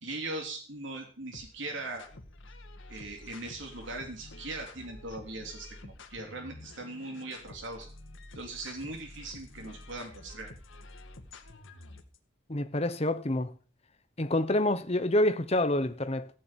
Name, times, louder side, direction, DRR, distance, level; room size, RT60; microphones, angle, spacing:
voice 1, 0.0-2.0 2.9-7.9 8.3-10.5, right 2 dB, 65° right, 3.3 m, -40 dB
sound 1, 1.3-12.2, left 2 dB, 70° left, 2.0 m, -49 dB
voice 2, 12.5-13.5 14.2-16.3, left 1 dB, 30° left, 1.0 m, -27 dB
15.0 x 6.8 x 9.3 m
head